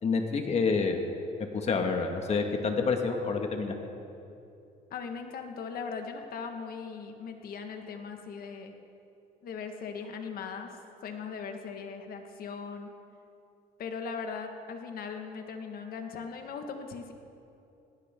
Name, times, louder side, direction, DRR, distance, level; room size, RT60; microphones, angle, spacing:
voice 1, 0.0-1.0 1.5-3.8, left 4 dB, 40° left, 4 dB, 1.8 m, -28 dB
voice 2, 4.9-8.7 9.4-10.7 11.0-12.9 13.8-17.1, left 5 dB, 60° left, 5 dB, 1.7 m, -39 dB
18.0 x 17.5 x 3.8 m, 2.7 s
cardioid pair, 110°, 17 cm